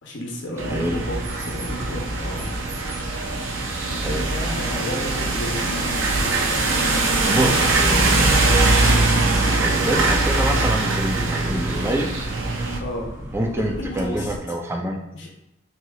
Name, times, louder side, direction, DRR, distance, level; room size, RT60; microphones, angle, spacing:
voice 1, 0.0-2.6 4.0-5.7 12.8-13.1 13.5-14.3 15.1-15.3, left 1 dB, 60° left, 0 dB, 0.7 m, -32 dB
sound 1, 0.6-14.4, equal, 40° right, 1.2 m, -36 dB
sound 2, 0.6-12.8, right 2 dB, 70° right, 0.6 m, -22 dB
voice 2, 0.7-1.0 4.0-4.3 7.2-8.9 9.6-12.1 13.3-15.0, right 1 dB, 10° right, 1 dB, 0.4 m, -26 dB
6.0 x 2.8 x 2.4 m, 0.91 s
head